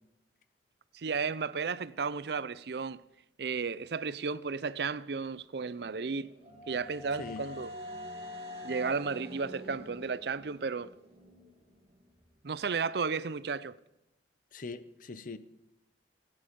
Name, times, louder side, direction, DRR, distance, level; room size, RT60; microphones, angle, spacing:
voice 1, 0.9-3.0 3.4-6.3 6.7-7.7 8.6-10.9 12.4-13.8, right 5 dB, 65° right, 0.5 m, -33 dB
sound 1, 5.6-11.5, left 1 dB, 35° right, 2.3 m, -45 dB
voice 2, 14.5-15.4, left 3 dB, 50° left, 0.7 m, -41 dB
17.0 x 9.8 x 5.2 m
head